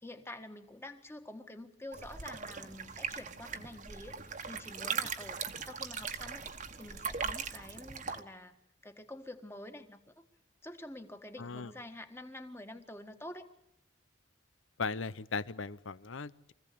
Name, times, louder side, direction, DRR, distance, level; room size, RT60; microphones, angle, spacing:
voice 1, 0.0-8.5 8.8-10.0 10.6-13.5, left 1 dB, 15° left, 7 dB, 1.7 m, -48 dB
sound 1, 1.9-8.2, right 6 dB, 40° right, 1.4 m, -39 dB
voice 2, 11.4-11.7 14.8-16.5, left 4 dB, 85° left, 18 dB, 0.8 m, -38 dB
24.5 x 16.0 x 8.5 m, 0.82 s
head